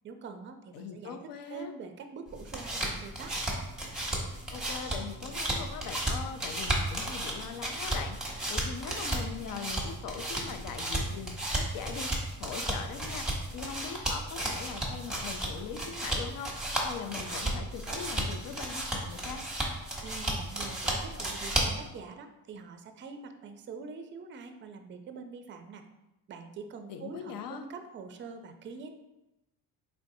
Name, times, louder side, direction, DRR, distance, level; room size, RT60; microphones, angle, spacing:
voice 1, 0.0-3.3 19.9-25.8 26.3-29.0, right 5 dB, 30° right, 7 dB, 0.4 m, -44 dB
voice 2, 0.7-1.7 4.3-12.1 12.4-19.4 26.9-27.7, left 7 dB, 60° left, 7 dB, 0.5 m, -41 dB
sound 1, 2.3-21.9, right 1 dB, ahead, 1.0 m, -34 dB
3.9 x 3.4 x 2.7 m, 0.95 s
cardioid pair, 90°, 39 cm